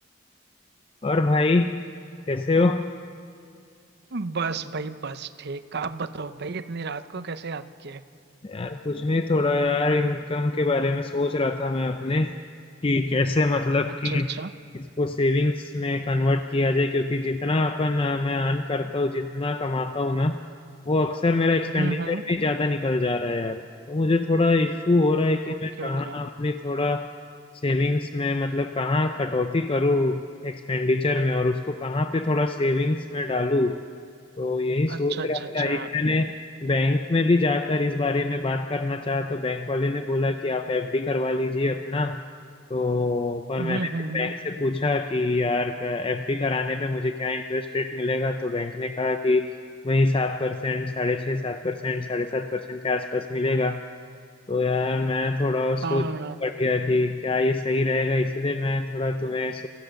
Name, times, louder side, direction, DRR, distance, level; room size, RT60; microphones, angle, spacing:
voice 1, 1.0-1.8 2.3-2.8 8.4-12.4 12.8-14.3 14.7-20.4 20.9-27.1 27.5-33.8 34.4-42.2 42.7-49.5 49.8-53.8 54.5-56.0 56.4-59.7, left 2 dB, 25° left, 7 dB, 0.5 m, -24 dB
voice 2, 4.1-8.0 13.9-14.5 21.7-22.2 25.3-26.2 34.9-35.9 43.6-44.4 55.8-56.4, right 4 dB, 55° right, 12 dB, 0.7 m, -32 dB
26.0 x 15.5 x 6.5 m, 2.4 s
head